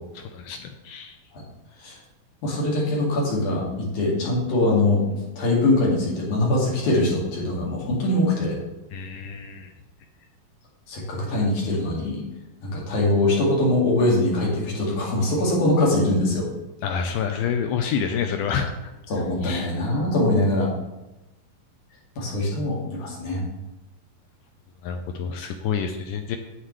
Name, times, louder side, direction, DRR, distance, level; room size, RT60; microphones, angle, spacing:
voice 1, 0.2-1.2 8.9-9.7 16.8-18.7 19.4-19.7 24.8-26.4, left 7 dB, 80° left, 6 dB, 2.0 m, -28 dB
voice 2, 2.4-5.0 5.4-8.6 10.9-12.2 12.6-16.4 19.1-20.7 22.2-23.4, left 2 dB, 60° left, -3 dB, 3.5 m, -22 dB
9.5 x 8.2 x 3.2 m, 0.98 s
omnidirectional pair, 4.0 m